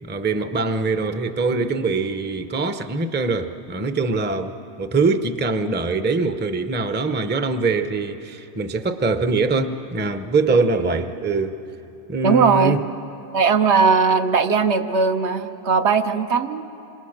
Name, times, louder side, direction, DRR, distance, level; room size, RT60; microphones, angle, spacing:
voice 1, 0.0-11.6 12.1-12.8, right 4 dB, 10° right, 9 dB, 0.6 m, -23 dB
voice 2, 12.2-12.8 13.3-16.6, right 5 dB, 70° right, 7 dB, 1.1 m, -18 dB
27.5 x 25.5 x 6.6 m, 3.0 s
omnidirectional pair, 1.2 m